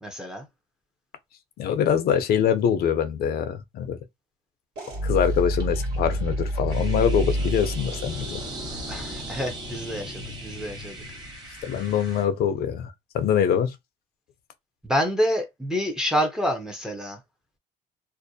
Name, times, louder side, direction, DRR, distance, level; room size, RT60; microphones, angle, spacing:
voice 1, 0.0-0.5 8.9-11.0 14.8-17.2, equal, 5° right, 0.5 m, -27 dB
voice 2, 1.6-4.0 5.0-8.4 11.6-13.8, left 8 dB, 65° left, 0.5 m, -24 dB
sound 1, 4.8-11.4, equal, 75° right, 1.4 m, -30 dB
sound 2, 6.7-12.2, right 1 dB, 25° right, 1.2 m, -39 dB
2.5 x 2.1 x 2.6 m
cardioid pair, 110°, 17 cm